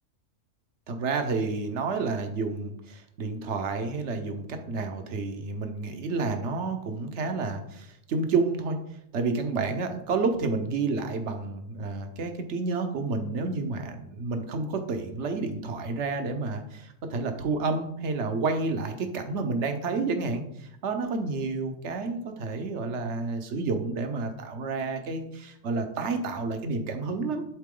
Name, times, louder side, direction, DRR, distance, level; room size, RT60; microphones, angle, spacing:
voice 1, 0.9-8.8 9.1-27.4, right 3 dB, 60° right, 6 dB, 1.2 m, -30 dB
11.5 x 4.2 x 3.8 m, 0.76 s
omnidirectional pair, 1.4 m